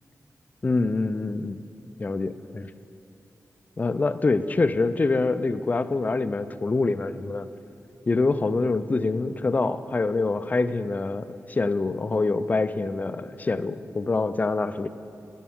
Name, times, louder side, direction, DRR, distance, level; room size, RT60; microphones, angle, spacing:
voice 1, 0.6-1.6 2.0-2.7 3.8-7.5 8.1-14.9, left 3 dB, 30° left, 12 dB, 0.3 m, -25 dB
12.0 x 9.3 x 3.6 m, 2.7 s
wide cardioid pair, 115°, 6 cm